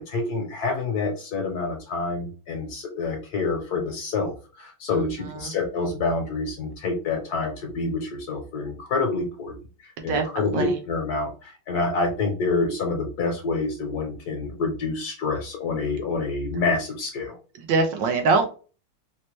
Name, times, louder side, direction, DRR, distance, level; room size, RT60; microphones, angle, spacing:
voice 1, 0.0-9.5 10.0-17.4, left 3 dB, 60° left, 2 dB, 1.2 m, -27 dB
voice 2, 4.9-5.5 10.1-10.8 17.6-18.5, right 4 dB, 70° right, 5 dB, 1.3 m, -24 dB
4.3 x 2.1 x 3.1 m, 0.35 s
omnidirectional pair, 2.2 m